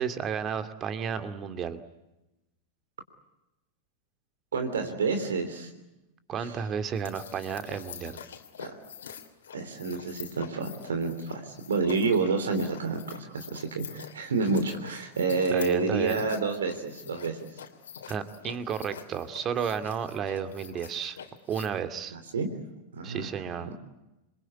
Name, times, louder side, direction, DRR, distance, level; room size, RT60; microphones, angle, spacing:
voice 1, 0.0-1.8 6.3-8.2 15.5-16.3 18.1-21.2 21.5-22.2 23.0-23.7, right 7 dB, 30° right, 9 dB, 2.3 m, -32 dB
voice 2, 4.5-5.7 6.4-6.5 8.6-8.7 9.5-17.4 22.1-22.5 22.9-23.3, right 4 dB, 65° right, 6 dB, 3.2 m, -29 dB
sound 1, 6.9-21.7, left 8 dB, 65° left, 3.0 m, -46 dB
28.0 x 23.0 x 8.3 m, 0.96 s
figure-of-eight pair, 90°, 0 cm